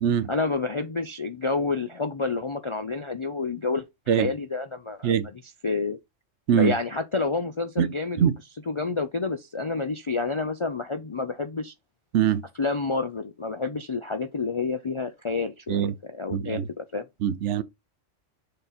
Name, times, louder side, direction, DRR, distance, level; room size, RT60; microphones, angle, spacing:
voice 1, 0.3-3.8 4.2-6.0 6.5-8.3 8.7-11.7 12.6-17.0, left 3 dB, 45° left, 0.4 m, -29 dB
voice 2, 7.8-8.3 12.1-12.4 15.7-15.9 16.3-16.7 17.2-17.6, right 9 dB, 65° right, 0.9 m, -23 dB
6.7 x 4.0 x 4.2 m
omnidirectional pair, 1.3 m